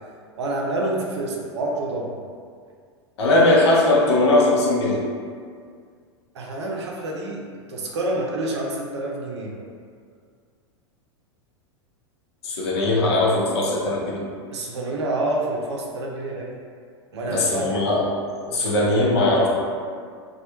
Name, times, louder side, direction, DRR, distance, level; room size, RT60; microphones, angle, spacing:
voice 1, 0.4-2.2 6.3-9.6 14.5-16.6 17.1-17.9, right 1 dB, 75° right, -2 dB, 0.5 m, -28 dB
voice 2, 3.2-5.0 12.4-14.2 17.3-18.0 18.3-19.5, left 2 dB, 65° left, -3 dB, 0.6 m, -19 dB
2.2 x 2.0 x 2.9 m, 2.1 s
hypercardioid pair, 95°, 15 cm